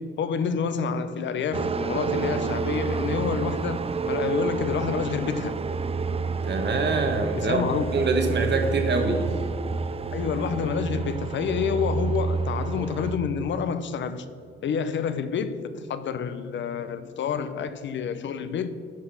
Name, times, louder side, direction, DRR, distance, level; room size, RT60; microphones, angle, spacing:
voice 1, 0.0-5.5 7.4-7.8 10.1-14.3 14.6-18.7, left 6 dB, 70° left, 0.6 m, -28 dB
sound 1, 1.5-13.2, right 4 dB, 30° right, 0.4 m, -29 dB
voice 2, 6.4-7.6 7.9-9.3, right 3 dB, 65° right, 1.3 m, -24 dB
9.6 x 6.0 x 5.5 m
cardioid pair, 55°, 20 cm